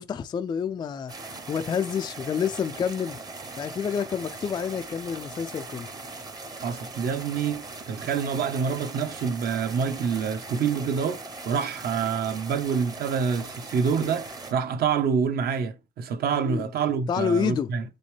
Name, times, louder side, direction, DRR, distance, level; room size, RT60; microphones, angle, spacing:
voice 1, 0.0-3.2 3.6-5.9 16.4-16.7 17.1-17.7, left 7 dB, 20° left, 0.3 m, -28 dB
sound 1, 1.1-14.5, right 3 dB, 20° right, 0.9 m, -40 dB
voice 2, 6.6-17.8, right 6 dB, 55° right, 1.0 m, -27 dB
7.4 x 5.2 x 3.2 m
cardioid pair, 175°, 19 cm